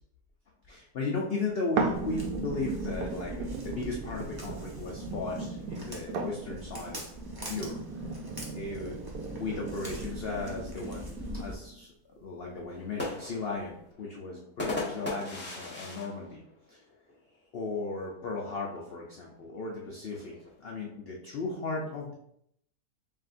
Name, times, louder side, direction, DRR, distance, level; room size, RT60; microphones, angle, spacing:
voice 1, 0.7-7.1 7.4-8.0 8.5-9.0 9.3-11.9 12.2-16.4 16.7-16.8 17.5-22.1, left 3 dB, 70° left, -1 dB, 0.5 m, -36 dB
sound 1, 1.8-11.8 12.3-12.4, right 3 dB, 75° right, 1.2 m, -37 dB
Walk footsteps, 1.9-11.5, equal, 25° right, 0.5 m, -43 dB
sound 2, 12.7-17.3 17.7-17.8 18.1-18.6 19.4-21.0, left 2 dB, 5° left, 1.1 m, -38 dB
7.3 x 2.5 x 2.5 m, 0.74 s
omnidirectional pair, 1.8 m